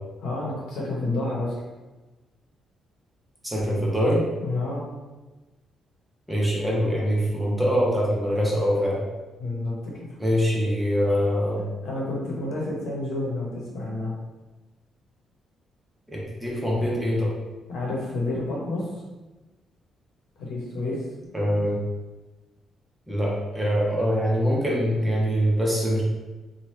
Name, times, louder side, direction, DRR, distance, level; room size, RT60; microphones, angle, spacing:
voice 1, 0.2-1.5 4.4-4.8 9.4-10.2 11.8-14.2 17.7-18.9 20.4-21.0, left 2 dB, 85° left, -4 dB, 0.9 m, -29 dB
voice 2, 3.4-4.2 6.3-9.0 10.2-11.6 16.1-17.3 21.3-21.8 23.1-26.0, equal, 5° right, -5 dB, 0.9 m, -23 dB
3.0 x 2.3 x 3.1 m, 1.2 s
cardioid pair, 100°, 0 cm